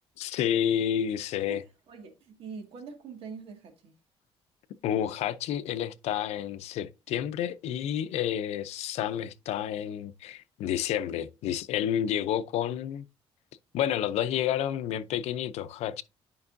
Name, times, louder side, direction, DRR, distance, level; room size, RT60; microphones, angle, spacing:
voice 1, 0.2-1.6 4.8-13.0 13.7-16.0, left 10 dB, 80° left, 0.6 m, -30 dB
voice 2, 1.9-3.9, right 5 dB, 60° right, 1.9 m, -43 dB
9.7 x 5.3 x 2.6 m
cardioid pair, 145°, 11 cm